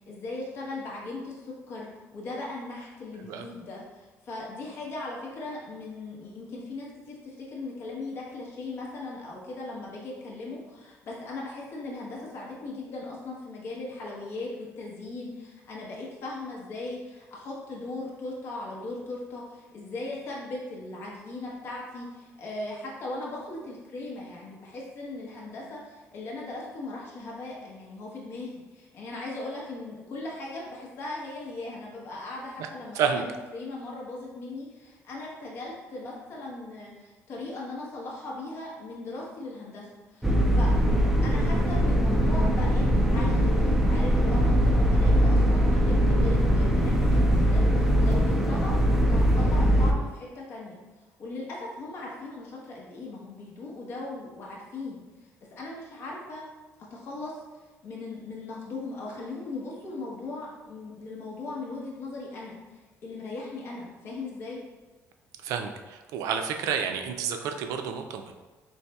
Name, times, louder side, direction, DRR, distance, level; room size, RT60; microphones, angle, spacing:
voice 1, 0.0-1.9 2.1-40.7 41.2-50.8 51.2-55.0 55.6-56.5 56.9-57.4 57.8-64.6, left 2 dB, 50° left, -3 dB, 0.9 m, -38 dB
sound 1, 40.2-49.9, equal, 5° right, 0.3 m, -21 dB
voice 2, 65.4-68.3, right 7 dB, 90° right, 6 dB, 0.4 m, -30 dB
4.1 x 3.1 x 2.3 m, 1.2 s
cardioid pair, 155°, 6 cm